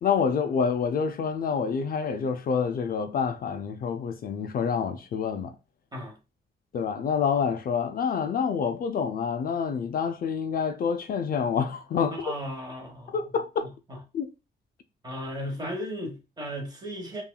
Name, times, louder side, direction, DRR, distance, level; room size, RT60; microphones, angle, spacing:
voice 1, 0.0-5.5 6.7-12.3 13.1-13.7 14.1-14.3, left 6 dB, 50° left, 0.4 m, -27 dB
voice 2, 12.1-13.2 13.9-14.0 15.0-17.2, equal, 20° right, 1.2 m, -35 dB
5.5 x 2.4 x 2.3 m
wide cardioid pair, 140°, 19 cm